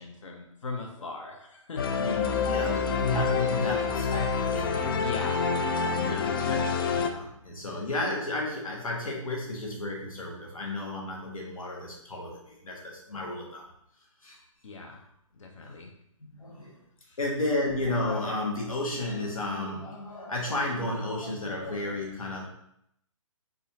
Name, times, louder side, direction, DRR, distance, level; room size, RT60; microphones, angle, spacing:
voice 1, 0.0-1.9 2.3-2.8 5.0-6.2 14.6-15.0 15.3-15.9 17.0-17.2, left 3 dB, 65° left, 1 dB, 0.9 m, -40 dB
sound 1, 1.8-7.1, left 5 dB, 40° left, 0.4 m, -27 dB
voice 2, 2.0-5.0 5.9-13.7 14.2-14.4 16.3-16.8 17.2-22.4, left 2 dB, 80° left, -2 dB, 1.5 m, -33 dB
4.1 x 3.7 x 2.7 m, 0.75 s
figure-of-eight pair, 140°, 17 cm